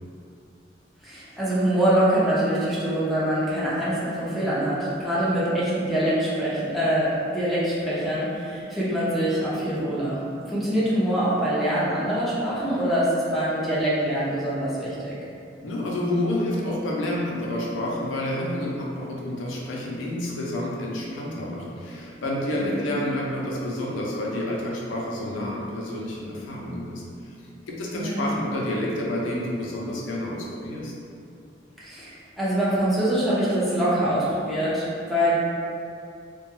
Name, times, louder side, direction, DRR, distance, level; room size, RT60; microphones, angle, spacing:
voice 1, 1.0-15.1 22.6-22.9 27.9-28.3 31.8-35.3, right 1 dB, ahead, -11 dB, 0.5 m, -24 dB
voice 2, 15.6-27.3 27.7-30.9, left 1 dB, 85° left, -4 dB, 0.5 m, -29 dB
2.2 x 2.2 x 3.0 m, 2.5 s
head